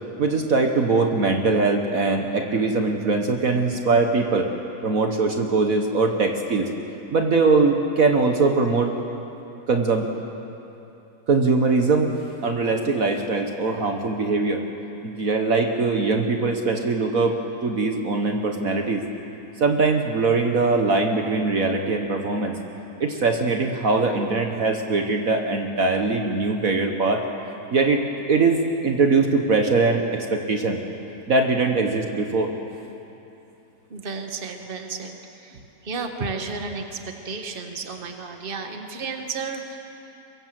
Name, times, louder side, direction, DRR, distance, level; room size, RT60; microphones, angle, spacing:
voice 1, 0.2-4.5 4.8-6.7 7.1-9.0 9.7-10.1 11.3-12.2 12.4-14.7 15.0-17.3 17.6-19.0 19.6-22.5 23.0-27.2 27.7-30.8 31.3-32.5, right 3 dB, 55° right, 4 dB, 1.7 m, -21 dB
voice 2, 33.9-35.6 35.8-39.8, right 4 dB, 35° right, 5 dB, 1.6 m, -32 dB
23.5 x 23.0 x 7.7 m, 3.0 s
omnidirectional pair, 1.8 m